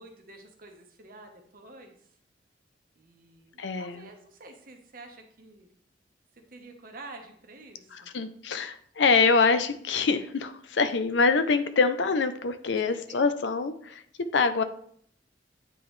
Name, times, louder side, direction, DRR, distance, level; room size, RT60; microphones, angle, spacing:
voice 1, 0.0-2.0 3.0-5.7 6.3-8.1 12.7-13.2, right 2 dB, 50° right, 3 dB, 1.1 m, -48 dB
voice 2, 3.6-4.1 7.9-14.0 14.3-14.6, left 4 dB, 75° left, 11 dB, 0.5 m, -25 dB
9.1 x 3.8 x 3.2 m, 0.63 s
head